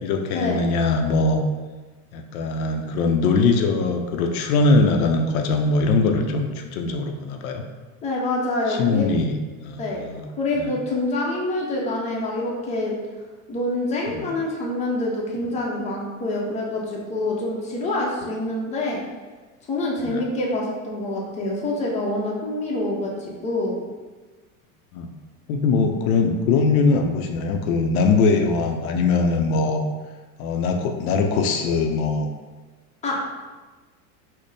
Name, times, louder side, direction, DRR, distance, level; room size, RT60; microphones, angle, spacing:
voice 1, 0.0-1.4 2.1-7.6 8.7-9.4 9.6-10.3 10.6-10.7 14.1-14.3 20.0-20.2 24.9-25.1 25.5-29.8 30.4-32.3, left 3 dB, 75° left, 4 dB, 0.6 m, -21 dB
voice 2, 8.0-9.1 9.8-10.0 10.4-12.9 13.5-19.0 19.7-23.8 33.0-33.2, left 2 dB, 15° left, -3 dB, 0.6 m, -26 dB
4.2 x 2.1 x 3.3 m, 1.3 s
supercardioid pair, 130°, 42 cm